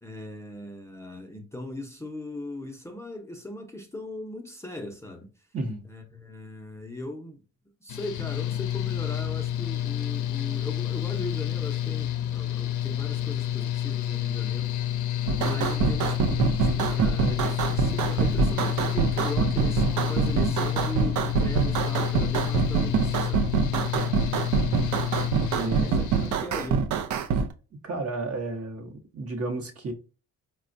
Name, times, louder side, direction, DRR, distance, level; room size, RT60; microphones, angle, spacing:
voice 1, 0.0-5.3 5.9-7.4 7.8-14.8 15.3-23.6 25.7-26.9, left 1 dB, 10° left, 0.6 m, -38 dB
voice 2, 5.5-5.9 23.9-24.2 25.4-26.0 27.3-27.4 27.8-29.9, right 2 dB, 50° right, 0.9 m, -32 dB
Mechanical fan, 7.9-26.4, left 11 dB, 80° left, 0.5 m, -29 dB
sound 1, 15.3-27.5, right 5 dB, 75° right, 0.5 m, -25 dB
4.1 x 2.2 x 2.5 m
cardioid pair, 90°, 30 cm